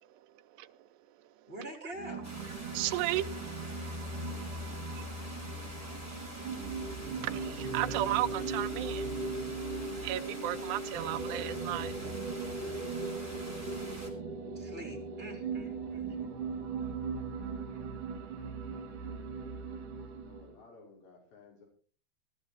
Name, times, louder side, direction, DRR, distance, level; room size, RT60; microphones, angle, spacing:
voice 1, 1.5-2.4 14.5-16.2, right 1 dB, 15° right, 3.9 m, -45 dB
sound 1, 1.9-20.5, right 3 dB, 60° right, 3.2 m, -38 dB
sound 2, 2.2-14.1, right 1 dB, 5° left, 4.1 m, -47 dB
voice 2, 2.7-3.3 7.2-9.0 10.0-11.9, right 14 dB, 80° right, 2.8 m, -33 dB
voice 3, 20.1-21.7, left 3 dB, 55° left, 7.0 m, -56 dB
17.0 x 13.0 x 4.5 m
omnidirectional pair, 5.0 m